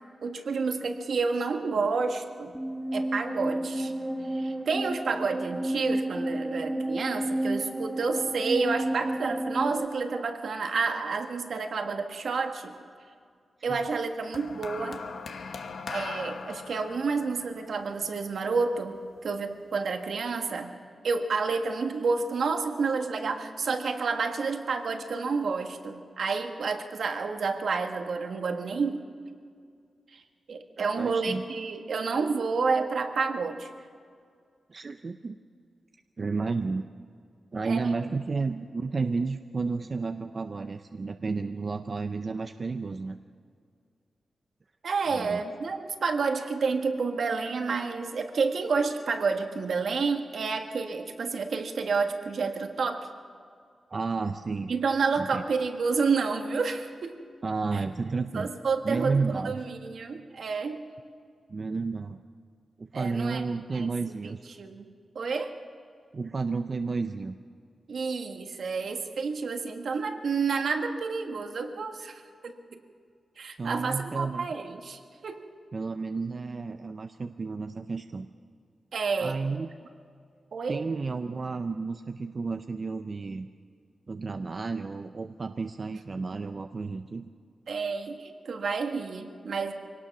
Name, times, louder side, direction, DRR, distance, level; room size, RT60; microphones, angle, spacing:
voice 1, 0.2-2.5 2.9-3.9 4.3-12.7 13.6-15.0 15.9-20.7 21.0-29.1 30.1-30.2 30.5-33.7 37.6-37.8 44.8-53.1 54.7-57.2 57.7-57.8 58.3-60.8 62.9-63.4 63.7-63.9 64.6-64.9 65.1-65.5 67.9-72.8 73.4-75.4 78.9-79.4 80.5-80.9 87.7-89.7, right 4 dB, 65° right, 5 dB, 1.5 m, -29 dB
sound 1, 2.5-9.9, right 1 dB, 5° right, 1.3 m, -31 dB
sound 2, 14.3-18.8 19.7-19.9, left 5 dB, 65° left, 1.1 m, -40 dB
voice 2, 30.8-31.4 34.7-35.4 36.2-36.9 37.5-43.2 45.1-45.4 53.9-54.7 55.2-55.4 57.4-58.5 58.8-59.6 61.5-62.2 62.8-64.4 66.1-67.4 73.6-74.5 75.7-78.3 79.2-79.7 80.7-83.5 84.1-87.3, right 4 dB, 35° right, 7 dB, 0.5 m, -32 dB
24.0 x 18.0 x 6.0 m, 2.2 s
wide cardioid pair, 150°, 0 cm